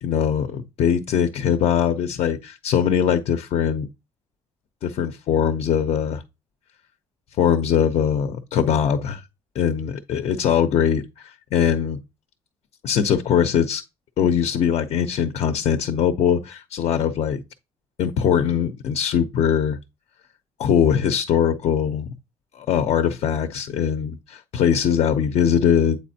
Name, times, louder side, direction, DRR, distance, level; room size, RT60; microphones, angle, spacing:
voice 1, 0.0-3.9 4.8-6.2 7.4-9.2 9.5-12.0 12.8-13.8 14.2-17.4 18.0-19.8 20.6-22.1 22.6-26.0, left 8 dB, 65° left, 0.7 m, -21 dB
8.2 x 4.2 x 2.8 m
cardioid pair, 85°, 12 cm